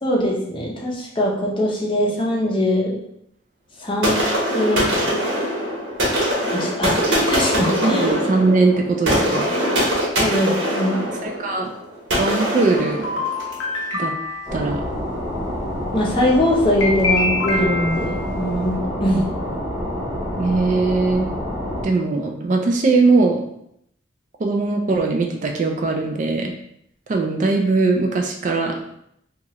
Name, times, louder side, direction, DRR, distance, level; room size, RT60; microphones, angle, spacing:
voice 1, 0.0-3.0 3.8-4.2 4.5-5.2 6.5-8.1 10.2-11.1 15.9-19.2, left 1 dB, 25° left, -3 dB, 0.5 m, -22 dB
sound 1, 4.0-13.7, equal, 65° right, 1.1 m, -22 dB
voice 2, 7.8-9.5 11.1-11.7 12.2-13.1 14.0-14.1 14.5-14.8 20.3-21.3 21.8-23.4 24.4-26.5 27.1-28.8, right 3 dB, 40° right, 2 dB, 0.3 m, -20 dB
sound 2, 12.8-14.6 16.8-18.3, left 2 dB, 70° left, 0.6 m, -25 dB
sound 3, 14.5-21.8, equal, 15° right, 0.7 m, -27 dB
2.9 x 2.3 x 2.9 m, 0.75 s
head